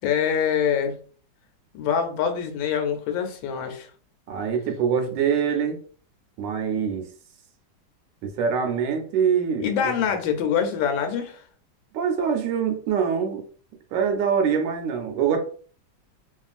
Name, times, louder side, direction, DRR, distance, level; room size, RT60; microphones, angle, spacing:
voice 1, 0.0-1.0 1.8-3.9 9.6-11.4, left 7 dB, 90° left, 1.3 m, -24 dB
voice 2, 4.3-5.8 6.4-7.0 8.2-9.9 11.9-13.4 13.9-15.4, right 7 dB, 75° right, 1.2 m, -24 dB
3.0 x 2.4 x 2.4 m
omnidirectional pair, 2.0 m